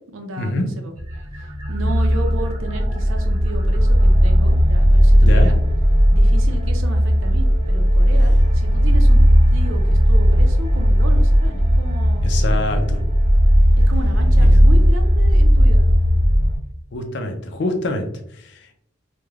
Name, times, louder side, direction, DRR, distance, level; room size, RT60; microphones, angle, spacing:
voice 1, 0.1-0.9 1.4-5.6 6.1-9.2 9.5-12.3 13.9-15.9, right 2 dB, 85° right, 4 dB, 0.5 m, -33 dB
sound 1, 1.0-16.6, equal, 40° right, 1.2 m, -15 dB
voice 2, 12.2-13.0 16.9-18.7, left 2 dB, 60° left, 5 dB, 0.4 m, -25 dB
3.1 x 2.1 x 2.3 m, 0.70 s
head